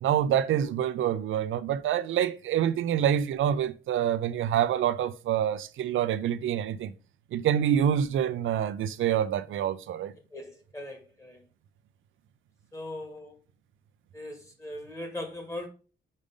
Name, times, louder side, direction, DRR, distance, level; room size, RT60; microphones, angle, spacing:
voice 1, 0.0-6.9 7.3-10.1, right 9 dB, 80° right, 0.5 m, -26 dB
voice 2, 10.3-11.4 12.7-13.3 14.1-15.7, left 1 dB, 15° left, 1.7 m, -39 dB
5.3 x 5.1 x 5.3 m
wide cardioid pair, 170°, 20 cm